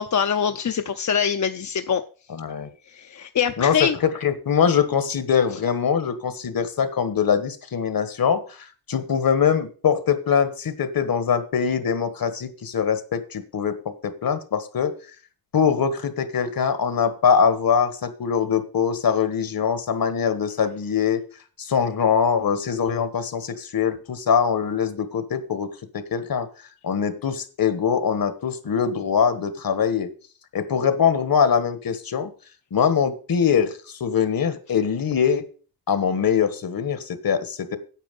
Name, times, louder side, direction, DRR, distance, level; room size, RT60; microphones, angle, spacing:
voice 1, 0.0-2.0 2.9-4.0, left 7 dB, 50° left, 7 dB, 0.7 m, -23 dB
voice 2, 2.3-2.7 3.6-14.9 15.5-21.2 21.6-26.5 26.8-30.1 30.5-32.3 32.7-35.4 35.9-37.8, left 7 dB, 65° left, 11 dB, 1.5 m, -23 dB
9.2 x 8.2 x 5.3 m, 0.38 s
wide cardioid pair, 125°, 37 cm